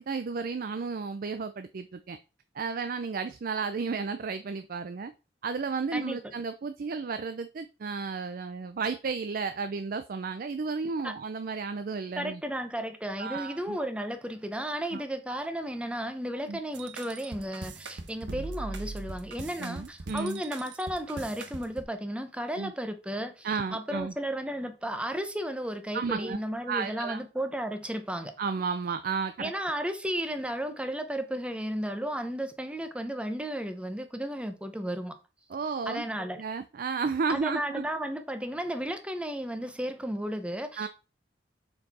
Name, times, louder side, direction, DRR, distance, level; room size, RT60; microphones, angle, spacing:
voice 1, 0.0-2.2 2.6-5.1 5.4-12.4 13.2-13.8 14.9-15.0 16.5-16.6 19.6-20.4 22.6-22.7 23.4-24.1 25.9-26.4 26.7-27.2 28.4-29.5 35.5-36.0 36.4-37.8 40.8-40.9, right 5 dB, 50° right, 0.4 m, -33 dB
voice 2, 12.2-28.3 29.4-35.1 35.9-36.4 37.3-40.9, equal, 5° right, 0.8 m, -34 dB
sound 1, 16.7-21.8, right 3 dB, 90° right, 1.0 m, -40 dB
6.5 x 4.5 x 4.1 m
head